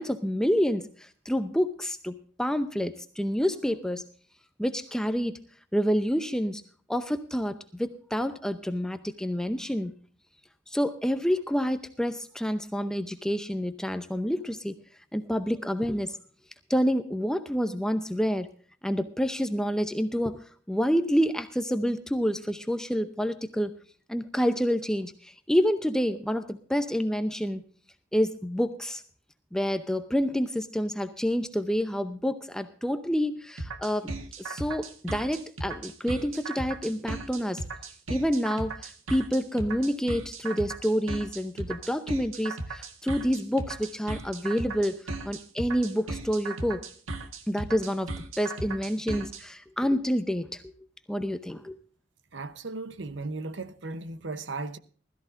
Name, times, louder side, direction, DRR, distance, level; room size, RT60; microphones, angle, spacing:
voice 1, 0.0-4.0 4.6-5.4 5.7-6.6 6.9-9.9 10.7-14.7 15.1-16.2 16.7-18.5 18.8-23.7 24.1-27.6 28.1-29.0 29.5-34.1 34.4-37.6 38.1-46.8 47.5-50.6 51.1-51.8, equal, 5° left, 0.6 m, -28 dB
sound 1, 33.6-49.4, right 2 dB, 85° right, 1.7 m, -36 dB
voice 2, 52.3-54.8, right 3 dB, 60° right, 0.9 m, -36 dB
20.0 x 14.0 x 2.6 m
head